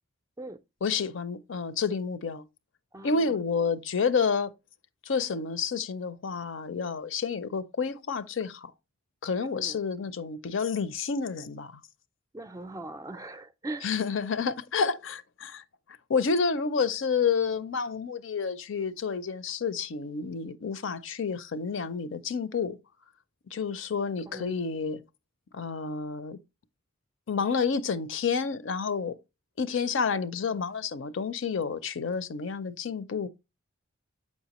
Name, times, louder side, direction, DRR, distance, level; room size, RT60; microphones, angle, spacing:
voice 1, 0.8-2.4 3.0-4.5 5.1-8.7 9.2-11.8 13.8-15.6 16.1-22.8 23.5-25.0 25.5-26.4 27.3-29.1 29.6-33.3, left 5 dB, 65° left, 0.5 m, -29 dB
voice 2, 2.9-3.3 9.5-9.8 12.3-13.9 24.3-24.5, right 2 dB, 15° right, 0.4 m, -40 dB
7.2 x 5.4 x 2.9 m
head